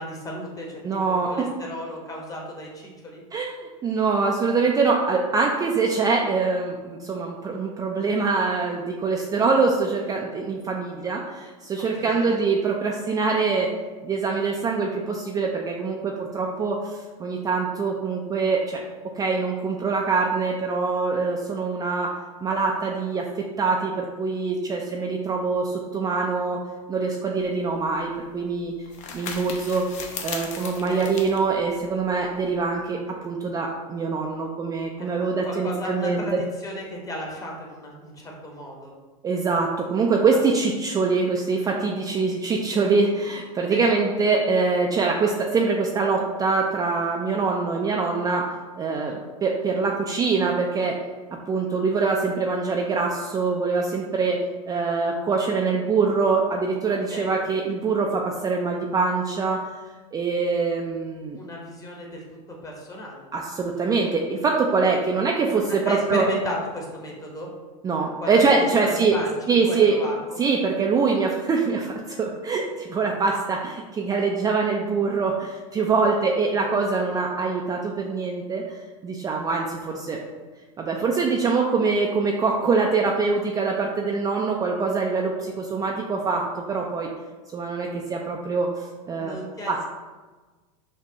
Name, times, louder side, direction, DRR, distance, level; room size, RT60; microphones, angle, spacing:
voice 1, 0.0-3.2 11.7-12.4 30.6-31.1 35.0-38.9 43.7-43.9 48.9-49.2 56.9-57.3 61.3-63.2 65.8-67.5 68.0-69.3 69.6-70.4 76.2-76.5 89.1-89.8, left 1 dB, 20° left, -1 dB, 1.0 m, -35 dB
voice 2, 0.8-1.4 3.3-13.7 14.0-18.8 19.2-23.3 23.6-26.6 26.9-28.7 29.1-29.8 30.2-36.4 39.2-49.1 49.4-51.0 51.5-59.6 60.1-61.4 63.3-66.3 67.8-69.2 69.5-70.0 70.4-78.8 79.0-80.2 80.8-87.1 87.5-89.4 89.7-89.8, right 4 dB, 20° right, 0 dB, 0.4 m, -24 dB
sound 1, 27.4-32.6, left 5 dB, 40° left, 0.6 m, -38 dB
6.0 x 2.2 x 2.9 m, 1.3 s
hypercardioid pair, 105°, 18 cm